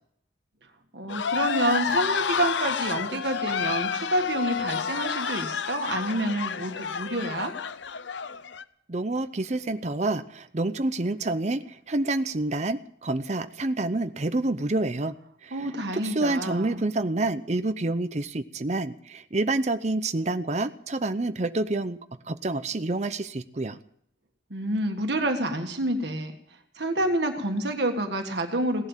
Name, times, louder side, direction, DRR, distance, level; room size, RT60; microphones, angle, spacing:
voice 1, 0.9-7.5 15.5-16.9 24.5-28.9, right 1 dB, 65° right, 5 dB, 1.8 m, -28 dB
sound 1, 1.1-8.6, left 6 dB, 75° left, 0.7 m, -29 dB
voice 2, 8.9-15.2 15.4-15.7 15.9-22.0 22.3-23.8, right 2 dB, 35° right, 10 dB, 0.7 m, -28 dB
17.5 x 11.0 x 7.3 m, 0.69 s
head